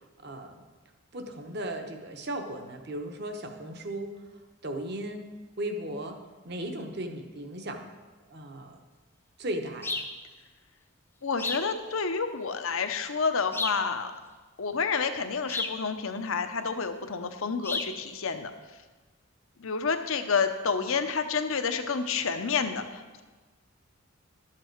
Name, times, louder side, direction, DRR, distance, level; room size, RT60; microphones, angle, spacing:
voice 1, 0.2-0.6 1.1-4.2 4.6-5.2 5.6-6.2 6.4-7.9 8.3-8.8 9.4-10.1, right 1 dB, 50° right, 5 dB, 0.9 m, -36 dB
sound 1, 9.8-10.2 11.4-11.7 13.5-13.9 15.5-15.8 17.6-18.0, left 3 dB, 10° left, 0.5 m, -32 dB
voice 2, 11.2-14.1 14.6-18.5 19.6-23.2, left 5 dB, 75° left, 8 dB, 0.8 m, -29 dB
11.5 x 7.6 x 4.6 m, 1.3 s
head